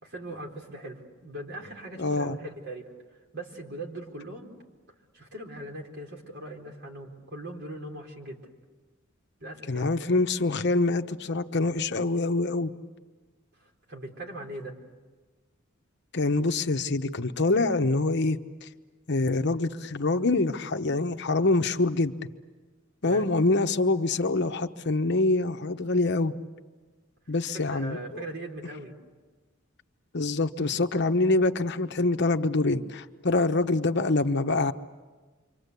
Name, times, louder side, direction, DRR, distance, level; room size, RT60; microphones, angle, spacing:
voice 1, 0.0-2.9 3.3-4.5 5.1-8.4 9.4-9.9 13.6-14.8 23.0-23.3 27.7-29.0, right 1 dB, 60° right, 1 dB, 4.4 m, -40 dB
voice 2, 2.0-2.4 9.7-12.7 16.1-18.7 19.1-22.1 23.0-26.3 27.3-28.2 30.1-34.7, left 2 dB, 60° left, 7 dB, 1.1 m, -25 dB
28.0 x 25.0 x 8.3 m, 1.3 s
head